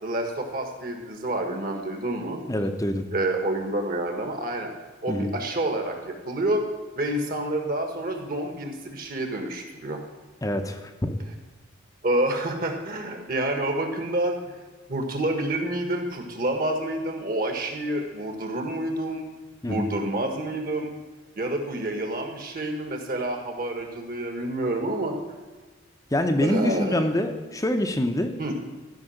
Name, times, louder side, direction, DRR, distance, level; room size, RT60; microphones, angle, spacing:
voice 1, 0.0-2.4 3.1-4.7 5.0-6.6 6.9-10.0 12.0-14.6 14.9-19.3 19.7-20.9 21.4-25.2 26.4-27.1 28.4-28.5, right 1 dB, 45° right, 4 dB, 1.5 m, -28 dB
voice 2, 2.5-3.0 5.1-5.3 10.4-11.2 19.6-19.9 26.1-28.3, left 1 dB, 15° left, 6 dB, 0.6 m, -25 dB
13.5 x 5.3 x 6.5 m, 1.3 s
head